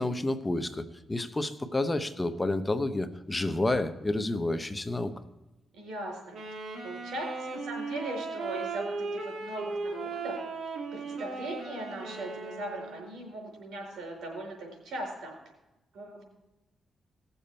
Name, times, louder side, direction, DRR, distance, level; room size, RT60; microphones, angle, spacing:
voice 1, 0.0-5.1, left 2 dB, 20° left, 9 dB, 0.9 m, -30 dB
voice 2, 5.7-6.4 6.8-10.3 10.9-15.3 15.9-16.2, right 1 dB, 85° right, 0 dB, 4.6 m, -39 dB
Wind instrument woodwind instrument, 6.3-13.2, right 4 dB, 60° right, 2.2 m, -37 dB
17.5 x 7.0 x 4.4 m, 1.0 s
cardioid pair, 85°, 0 cm